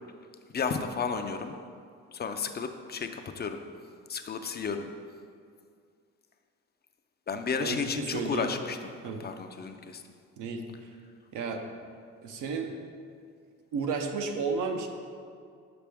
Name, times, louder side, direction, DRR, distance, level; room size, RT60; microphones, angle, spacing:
voice 1, 0.5-1.5 2.1-3.6 4.1-4.9 7.3-8.8 9.2-10.0, left 5 dB, 35° left, 7 dB, 0.4 m, -32 dB
voice 2, 7.6-8.5 9.0-9.2 10.4-10.7 11.3-11.6 12.2-12.7 13.7-14.9, right 4 dB, 80° right, 4 dB, 0.7 m, -32 dB
6.0 x 5.1 x 3.4 m, 2.2 s
cardioid pair, 90°, 30 cm